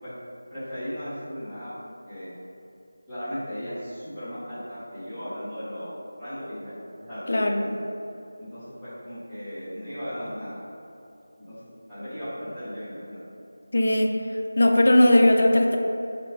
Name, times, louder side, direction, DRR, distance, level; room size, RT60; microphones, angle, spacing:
voice 1, 0.5-1.7 2.1-2.3 3.1-5.9 6.2-7.6 8.4-10.6 11.4-13.2, equal, 5° right, -22 dB, 1.5 m, -36 dB
voice 2, 7.3-7.6 13.7-14.1 14.6-15.8, left 1 dB, 60° left, 2 dB, 0.5 m, -18 dB
5.0 x 2.7 x 3.3 m, 2.7 s
figure-of-eight pair, 170°, 0 cm